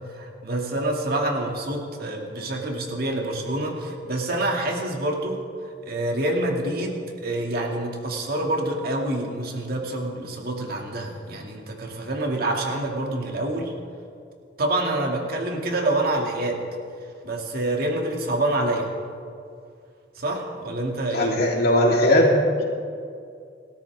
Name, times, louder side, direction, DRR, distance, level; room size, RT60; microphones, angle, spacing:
voice 1, 0.1-13.7 14.6-16.6 17.2-18.9 20.2-21.4, right 1 dB, 55° right, 1 dB, 2.4 m, -27 dB
voice 2, 21.1-22.6, left 1 dB, 55° left, -2 dB, 3.5 m, -19 dB
28.0 x 13.0 x 3.6 m, 2.3 s
head